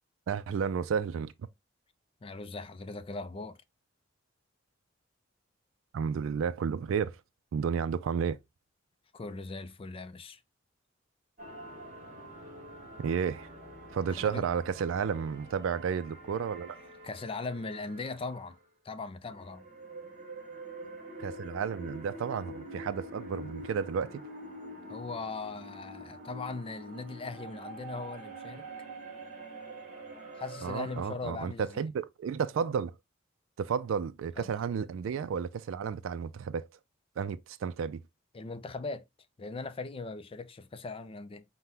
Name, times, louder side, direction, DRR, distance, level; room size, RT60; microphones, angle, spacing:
voice 1, 0.3-1.3 5.9-7.2 7.5-8.4 13.0-13.5 13.9-16.8 21.2-24.2 30.6-32.9 33.6-36.7 37.2-38.0, right 6 dB, 80° right, 0.3 m, -32 dB
voice 2, 2.2-3.6 9.1-10.4 14.1-14.4 17.0-18.6 18.8-19.6 24.9-28.7 30.3-31.8 34.4-34.5 38.3-39.1 39.4-41.4, left 3 dB, 30° left, 0.4 m, -39 dB
sound 1, 11.4-18.5 19.3-31.0, right 1 dB, 40° right, 1.2 m, -46 dB
5.7 x 2.2 x 3.4 m
head